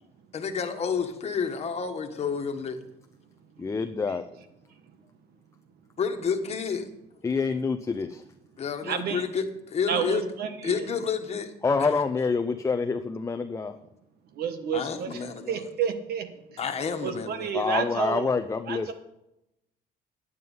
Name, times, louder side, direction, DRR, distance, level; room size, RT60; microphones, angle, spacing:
voice 1, 0.3-2.8 6.0-6.9 8.6-10.2 10.6-11.5 14.7-15.7 16.6-17.5, left 6 dB, 40° left, 5 dB, 1.5 m, -30 dB
voice 2, 3.6-4.2 7.2-8.2 11.6-13.8 17.5-18.9, left 4 dB, 15° left, 7 dB, 0.5 m, -27 dB
voice 3, 8.8-9.2 9.9-10.8 14.4-15.2 15.5-16.3 17.0-18.3 18.7-18.9, right 7 dB, 70° right, 8 dB, 1.4 m, -30 dB
9.6 x 9.3 x 5.5 m, 0.87 s
cardioid pair, 110°, 17 cm